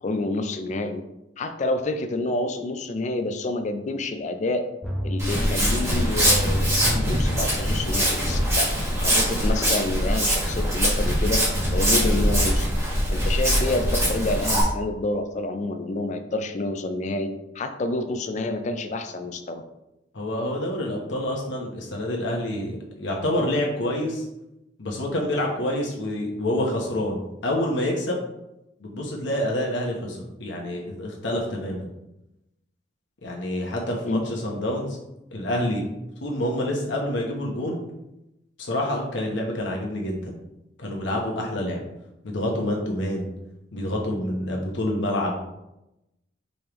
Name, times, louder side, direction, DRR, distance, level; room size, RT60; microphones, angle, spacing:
voice 1, 0.0-1.0 1.4-4.6 5.0-11.4 11.7-12.7 13.1-19.6 34.0-34.2, left 2 dB, 40° left, 8 dB, 0.4 m, -28 dB
sound 1, 4.8-9.5 9.8-9.9, equal, 5° left, 0.9 m, -31 dB
Walk footsteps, 5.2-14.6, equal, 15° right, 1.5 m, -23 dB
voice 2, 20.1-24.2 24.8-28.2 28.8-31.9 33.2-35.0 35.3-35.8 36.2-37.8 38.6-40.4 40.8-41.8 42.2-43.3 43.7-45.4, left 1 dB, 80° left, -1 dB, 0.9 m, -27 dB
5.3 x 3.3 x 3.0 m, 0.90 s
head